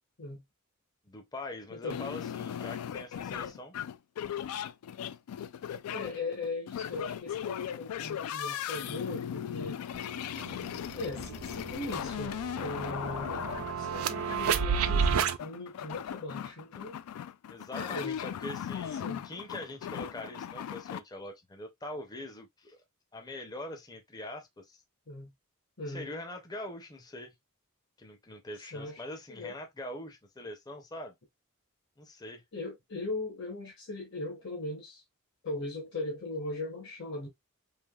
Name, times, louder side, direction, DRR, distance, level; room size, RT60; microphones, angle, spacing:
voice 1, 1.1-3.7 17.5-22.8 23.1-24.8 25.9-27.3 28.0-31.2 32.0-32.4, left 1 dB, 20° left, 0.5 m, -43 dB
voice 2, 1.7-2.0 5.9-9.8 10.9-17.0 17.7-18.2 19.0-19.3 25.1-25.3 25.8-26.1 28.7-29.0 29.3-29.5 32.5-35.0 35.4-37.3, left 2 dB, 55° left, 0.9 m, -39 dB
sound 1, 1.9-21.0, left 9 dB, 90° left, 0.3 m, -38 dB
sound 2, 9.9-10.0 10.4-15.4, right 6 dB, 75° right, 0.4 m, -31 dB
3.2 x 2.6 x 2.2 m
head